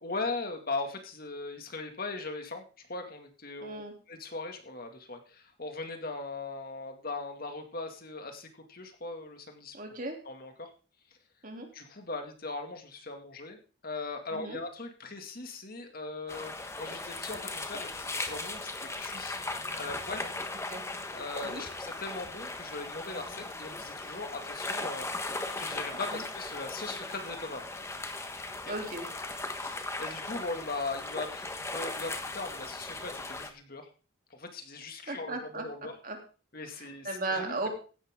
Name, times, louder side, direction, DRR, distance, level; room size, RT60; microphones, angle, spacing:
voice 1, 0.0-2.6 2.9-3.8 4.1-9.8 10.3-10.7 11.7-19.4 19.8-20.3 21.1-25.1 25.6-27.6 28.4-28.7 29.5-33.9 34.4-35.9 36.5-37.6, left 3 dB, 50° left, 5 dB, 2.2 m, -39 dB
voice 2, 3.6-3.9 9.7-10.2 11.4-11.7 14.3-14.6 20.7-20.8 21.4-21.6 26.1-26.2 28.6-29.1 35.1-36.2 36.7-37.7, right 2 dB, 45° right, 3 dB, 3.1 m, -36 dB
sound 1, 16.3-33.5, left 2 dB, 15° left, 1.3 m, -38 dB
16.0 x 11.5 x 3.7 m, 0.36 s
head